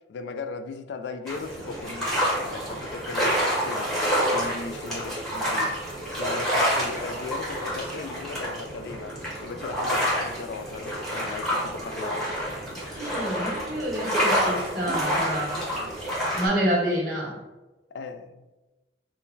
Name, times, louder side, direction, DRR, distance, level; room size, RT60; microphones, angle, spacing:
voice 1, 0.1-4.0 4.3-5.8 6.2-12.3 17.9-18.4, left 4 dB, 75° left, 9 dB, 0.3 m, -37 dB
sound 1, 1.3-16.5, equal, ahead, 1.0 m, -28 dB
voice 2, 12.9-15.6 16.3-17.4, equal, 55° right, -3 dB, 1.3 m, -28 dB
3.8 x 2.1 x 3.9 m, 1.1 s
head